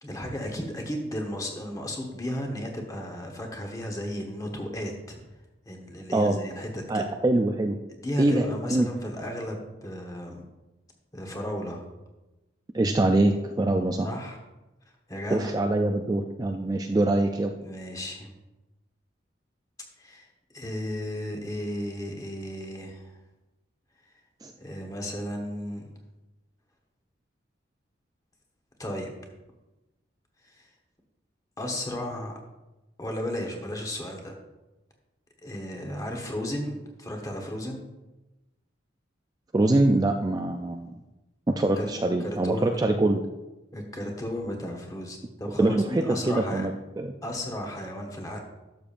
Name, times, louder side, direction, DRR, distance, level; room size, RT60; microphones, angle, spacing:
voice 1, 0.0-5.2 5.7-7.1 8.0-10.4 11.1-11.9 14.0-14.4 15.1-15.6 17.6-18.3 20.0-20.3 20.5-23.0 24.6-25.9 28.8-29.1 31.6-32.3 33.0-34.3 35.4-37.8 41.8-41.9 42.2-42.7 43.7-46.7 47.2-48.4, equal, 20° left, 2 dB, 1.1 m, -34 dB
voice 2, 6.9-7.8 8.2-8.4 8.7-8.9 12.7-14.1 15.3-17.5 24.4-24.5 39.5-40.9 41.6-43.2 45.6-46.7 47.0-47.1, right 2 dB, 20° right, 4 dB, 0.3 m, -24 dB
11.5 x 7.0 x 2.5 m, 1.0 s
head